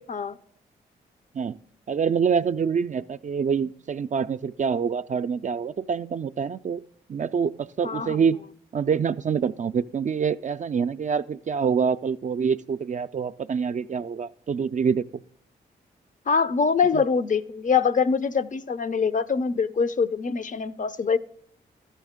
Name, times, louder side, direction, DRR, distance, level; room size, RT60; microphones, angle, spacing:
voice 1, 1.9-6.8 7.1-8.4 8.7-15.0 16.9-17.0, right 6 dB, 40° right, 11 dB, 0.4 m, -26 dB
voice 2, 7.8-8.2 16.3-21.2, left 5 dB, 40° left, 14 dB, 0.5 m, -24 dB
13.5 x 5.7 x 3.6 m, 0.70 s
supercardioid pair, 40°, 20 cm